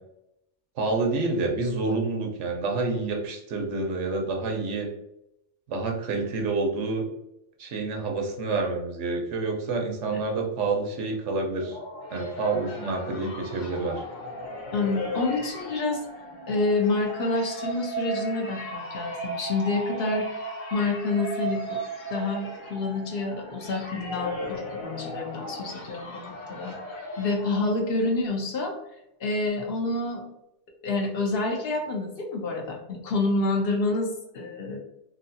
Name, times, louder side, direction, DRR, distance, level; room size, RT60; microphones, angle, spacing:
voice 1, 0.8-4.9 5.7-7.0 7.6-11.8 12.1-14.0, right 3 dB, 90° right, 2 dB, 1.1 m, -28 dB
sound 1, 11.4-28.3, right 1 dB, 80° left, 1.2 m, -36 dB
voice 2, 14.7-16.0 16.5-20.3 20.7-21.8 22.1-28.8 29.2-30.2 30.8-34.8, left 3 dB, 60° left, 2 dB, 0.8 m, -28 dB
3.1 x 2.6 x 2.6 m, 0.83 s
omnidirectional pair, 1.2 m